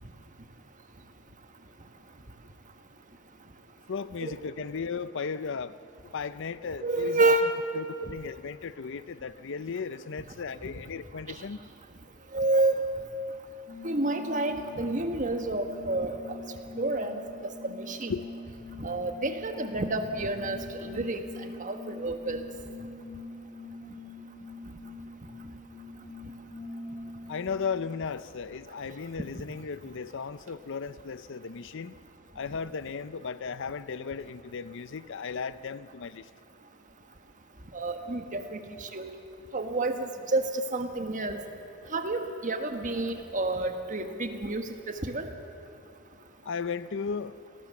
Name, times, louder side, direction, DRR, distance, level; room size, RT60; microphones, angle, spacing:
voice 1, 3.9-5.7 6.1-7.3 7.7-11.6 18.1-18.3 25.8-25.9 27.3-31.9 32.4-36.3 46.4-47.4, left 5 dB, 55° left, 15 dB, 0.5 m, -35 dB
voice 2, 6.8-7.5 12.3-12.9 13.8-16.2 16.8-17.2 17.7-18.1 18.8-21.2 21.6-22.4 37.7-38.6 38.9-39.1 39.5-41.4 41.9-45.3, right 2 dB, 35° right, 6 dB, 1.5 m, -29 dB
sound 1, 13.7-28.1, left 2 dB, 30° left, 2.7 m, -44 dB
27.5 x 19.0 x 7.1 m, 2.7 s
head